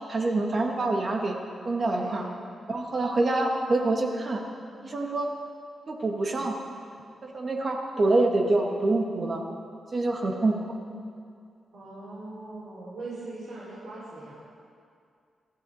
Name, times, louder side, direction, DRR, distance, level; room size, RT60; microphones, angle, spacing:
voice 1, 0.1-1.4 1.6-2.2 2.7-4.4 4.8-5.3 5.9-6.6 7.2-9.4 9.9-10.6, right 2 dB, 35° right, 2 dB, 1.7 m, -26 dB
voice 2, 2.0-2.3 11.7-14.4, right 2 dB, 65° right, -10 dB, 4.9 m, -40 dB
23.5 x 13.5 x 4.1 m, 2.3 s
wide cardioid pair, 145°, 0 cm